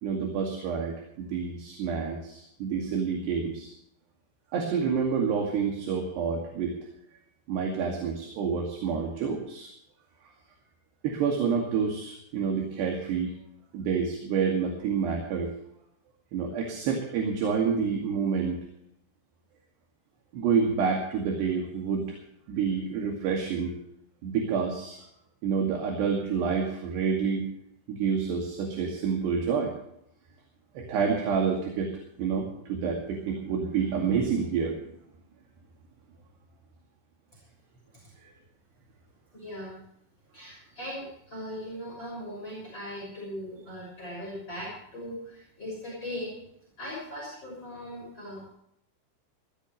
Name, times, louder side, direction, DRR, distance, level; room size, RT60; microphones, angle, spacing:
voice 1, 0.0-3.7 4.5-6.8 7.5-9.7 11.0-13.3 13.7-15.5 16.3-18.6 20.3-22.2 22.5-23.8 24.2-25.0 25.4-27.5 27.9-29.7 30.8-31.9 32.2-34.8, right 6 dB, 65° right, 1 dB, 4.2 m, -28 dB
voice 2, 39.3-39.8 40.3-46.4 46.8-48.5, equal, 25° left, -3 dB, 6.8 m, -39 dB
20.0 x 16.5 x 3.2 m, 0.73 s
omnidirectional pair, 5.5 m